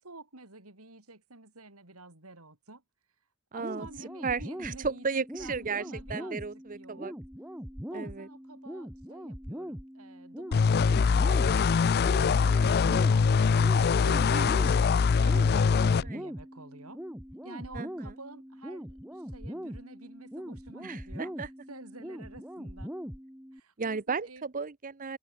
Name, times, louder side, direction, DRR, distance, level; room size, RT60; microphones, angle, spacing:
voice 1, 0.0-2.8 3.5-7.2 7.9-14.2 15.2-17.0 17.4-22.9 23.5-24.4, right 2 dB, 85° right, 5.2 m, -50 dB
voice 2, 3.5-7.1 7.9-8.3 13.9-14.8 15.9-16.2 17.7-18.1 20.8-21.5 23.8-25.2, right 5 dB, 40° right, 0.8 m, -35 dB
sound 1, 3.6-23.6, equal, 5° right, 3.4 m, -41 dB
sound 2, 10.5-16.0, left 5 dB, 45° left, 0.4 m, -23 dB
head